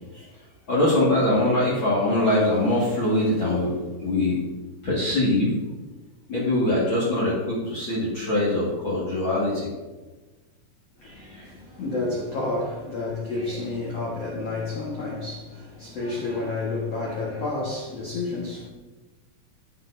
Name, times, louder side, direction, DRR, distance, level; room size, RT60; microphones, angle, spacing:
voice 1, 0.7-4.4 4.8-5.5 6.3-9.7, left 1 dB, 55° left, 1.3 m, -23 dB
voice 2, 11.0-18.7, left 3 dB, 75° left, 1.4 m, -30 dB
16.5 x 6.3 x 2.7 m
omnidirectional pair, 5.3 m